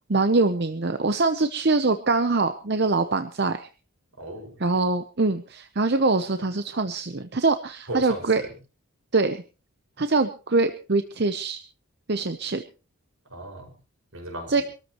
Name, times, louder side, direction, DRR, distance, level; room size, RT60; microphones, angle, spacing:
voice 1, 0.1-3.7 4.6-8.4 9.1-9.4 10.0-11.6 12.1-12.6 14.5-14.6, right 3 dB, 50° right, 9 dB, 0.8 m, -23 dB
voice 2, 4.2-4.6 7.9-8.6 13.3-13.7 14.1-14.6, equal, 75° right, 2 dB, 5.6 m, -36 dB
25.5 x 13.5 x 3.0 m, 0.32 s
head